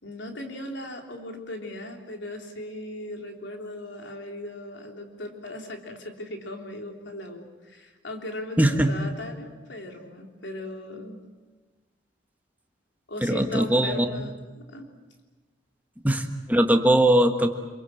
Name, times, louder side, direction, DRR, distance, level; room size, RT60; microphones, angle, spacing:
voice 1, 0.0-11.2 13.1-14.9, left 1 dB, 60° left, 2 dB, 3.5 m, -38 dB
voice 2, 8.6-8.9 13.2-14.1 16.0-17.5, right 1 dB, 10° right, 5 dB, 1.4 m, -20 dB
27.0 x 23.0 x 7.8 m, 1.3 s
head